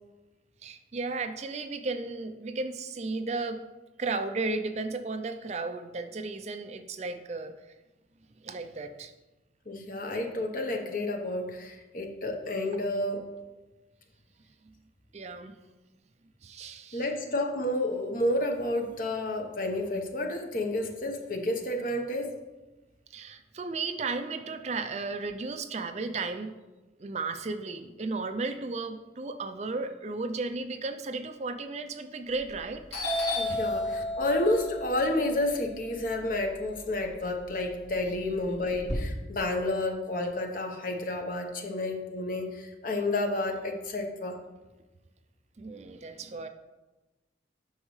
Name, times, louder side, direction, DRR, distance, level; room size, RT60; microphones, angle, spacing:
voice 1, 0.6-3.6 4.0-7.5 8.4-9.1 15.1-15.6 16.4-17.0 23.1-26.6 27.0-32.9 33.5-33.6 38.1-38.4 45.6-46.5, right 3 dB, 35° right, 8 dB, 0.4 m, -34 dB
voice 2, 9.7-13.2 16.9-22.4 33.4-44.4, left 1 dB, 50° left, 3 dB, 1.0 m, -30 dB
Doorbell, 32.3-32.6 32.9-37.0 37.4-38.9, left 1 dB, 70° left, 2.8 m, -33 dB
9.6 x 6.3 x 3.2 m, 1.1 s
head